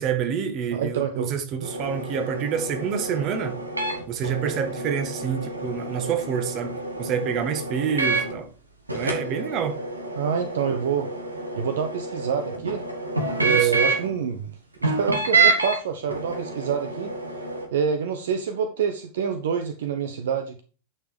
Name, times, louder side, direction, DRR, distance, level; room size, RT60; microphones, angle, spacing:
voice 1, 0.0-3.5 4.1-6.7 7.0-8.5 8.9-9.8 13.4-13.7, right 7 dB, 35° right, 1.7 m, -27 dB
voice 2, 0.7-1.3 10.2-11.1 11.5-12.8 13.4-14.5 14.8-17.1 17.7-20.6, right 7 dB, 60° right, 1.0 m, -26 dB
sound 1, 1.6-8.4 8.9-14.1 14.8-15.8 16.1-17.7, right 3 dB, 80° right, 2.1 m, -28 dB
10.0 x 5.8 x 4.8 m
figure-of-eight pair, 90°, 0 cm